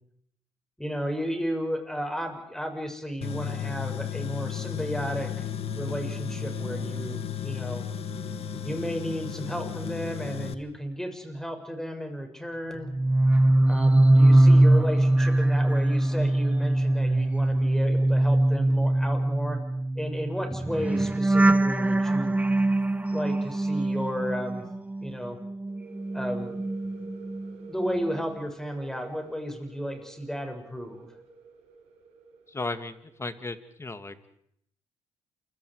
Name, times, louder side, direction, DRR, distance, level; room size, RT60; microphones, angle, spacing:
voice 1, 0.8-5.5 5.8-7.8 8.6-12.9 13.7-19.6 19.9-22.3 23.1-24.6 25.0-25.4 26.1-26.6 27.7-31.1, equal, 5° left, 5 dB, 6.5 m, -33 dB
Tools, 3.2-10.5, left 7 dB, 60° left, 1.8 m, -34 dB
sound 1, 12.8-25.1 25.4-27.5 27.8-28.2, right 1 dB, 10° right, 0.9 m, -22 dB
sound 2, 25.7-33.3, right 3 dB, 80° right, 5.9 m, -49 dB
voice 2, 32.5-34.2, left 3 dB, 25° left, 11 dB, 2.1 m, -35 dB
28.5 x 23.5 x 4.9 m, 0.71 s
supercardioid pair, 65°, 11 cm